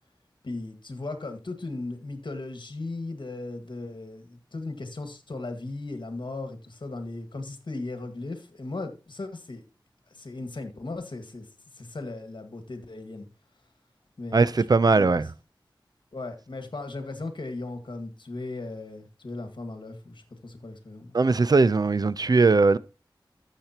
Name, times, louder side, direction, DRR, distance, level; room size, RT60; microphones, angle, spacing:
voice 1, 0.4-9.6 10.1-11.5 11.7-13.3 14.2-14.5 14.9-15.1 16.1-21.1, left 2 dB, 70° left, 1.7 m, -37 dB
voice 2, 14.3-15.3 21.1-22.8, right 3 dB, 50° right, 0.5 m, -20 dB
12.5 x 7.5 x 2.9 m
wide cardioid pair, 70°, 8 cm